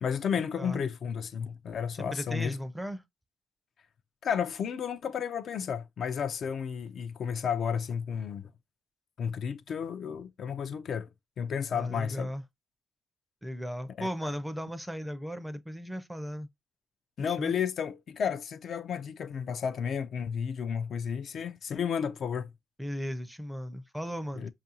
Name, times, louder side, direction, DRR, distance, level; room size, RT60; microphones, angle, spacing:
voice 1, 0.0-2.6 4.2-8.5 9.2-11.1 11.4-12.3 14.0-14.1 17.2-22.5 24.3-24.5, left 7 dB, 60° left, 0.4 m, -32 dB
voice 2, 2.1-3.0 11.7-12.4 13.4-16.5 17.4-17.5 22.8-24.5, equal, 5° right, 0.5 m, -36 dB
5.1 x 2.4 x 2.8 m
cardioid pair, 90°, 0 cm